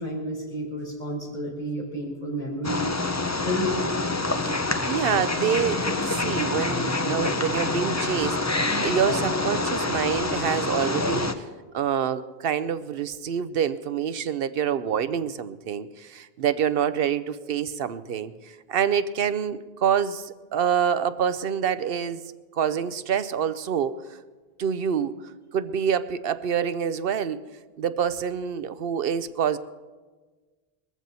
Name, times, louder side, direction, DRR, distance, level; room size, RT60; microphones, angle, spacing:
voice 1, 0.0-2.9 3.4-4.0, equal, 50° left, -4 dB, 5.0 m, -30 dB
Wild animals, 2.6-11.3, left 2 dB, 20° left, 0.6 m, -26 dB
voice 2, 4.9-11.4 11.7-22.2 22.5-23.9 24.6-27.4 27.8-29.6, right 8 dB, 70° right, 13 dB, 0.8 m, -26 dB
20.5 x 14.5 x 4.1 m, 1.3 s
omnidirectional pair, 1.0 m